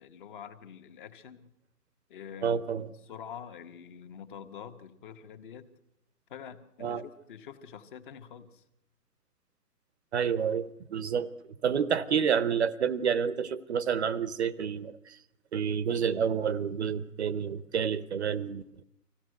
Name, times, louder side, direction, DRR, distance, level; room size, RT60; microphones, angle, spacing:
voice 1, 0.0-1.5 2.1-2.6 3.0-5.7 6.3-8.6, left 8 dB, 30° left, 8 dB, 1.6 m, -46 dB
voice 2, 2.4-2.9 6.8-7.0 10.1-11.3 11.6-15.2 15.5-18.8, right 7 dB, 45° right, 17 dB, 0.9 m, -29 dB
25.0 x 16.5 x 8.0 m, 0.83 s
hypercardioid pair, 150°, 48 cm